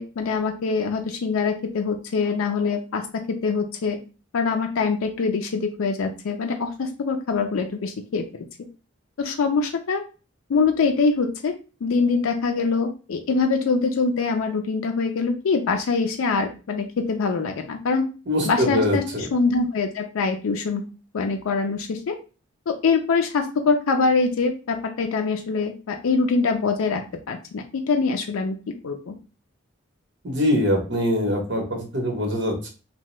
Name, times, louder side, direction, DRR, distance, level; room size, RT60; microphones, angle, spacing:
voice 1, 0.0-3.0 3.3-4.0 4.3-8.5 9.2-10.0 10.5-11.5 11.8-18.1 18.4-19.0 19.3-20.8 21.1-22.2 22.7-28.6 28.8-29.1, left 4 dB, 90° left, 4 dB, 0.4 m, -24 dB
voice 2, 18.3-19.3 30.2-32.7, left 1 dB, 55° right, 1 dB, 0.9 m, -23 dB
2.8 x 2.2 x 3.1 m, 0.34 s
head